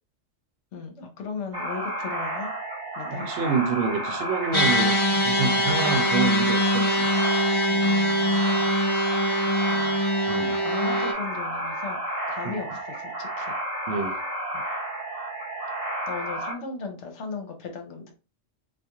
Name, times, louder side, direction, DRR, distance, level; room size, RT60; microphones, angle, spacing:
voice 1, 0.7-2.5 3.0-3.3 5.1-5.4 7.7-9.4 9.7-12.0 12.3-13.6 14.5-14.6 16.1-18.1, left 4 dB, 70° left, 1.0 m, -37 dB
sound 1, 1.5-16.5, right 1 dB, 35° right, 1.1 m, -32 dB
voice 2, 3.1-7.1 10.3-10.6 12.4-12.6 13.9-14.2, right 5 dB, 75° right, 0.8 m, -28 dB
sound 2, 4.5-11.1, equal, 30° left, 0.6 m, -23 dB
2.4 x 2.3 x 2.8 m
omnidirectional pair, 1.3 m